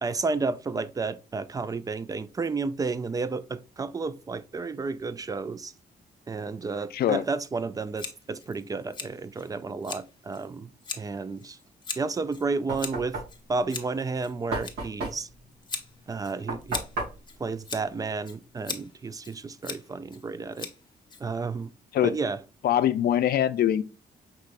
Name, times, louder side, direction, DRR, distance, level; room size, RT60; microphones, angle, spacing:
voice 1, 0.0-5.7 6.3-11.6 12.0-13.2 13.5-15.3 16.1-16.8 17.4-20.7 21.2-21.7 22.0-22.4, right 4 dB, 20° right, 0.3 m, -31 dB
voice 2, 6.9-7.2 21.9-22.1 22.6-23.8, left 11 dB, 75° left, 0.5 m, -23 dB
Scissors, 8.0-21.7, left 4 dB, 25° left, 0.7 m, -41 dB
Knock, 12.1-18.6, right 2 dB, 90° right, 2.6 m, -37 dB
5.7 x 3.3 x 2.4 m
cardioid pair, 120°, 16 cm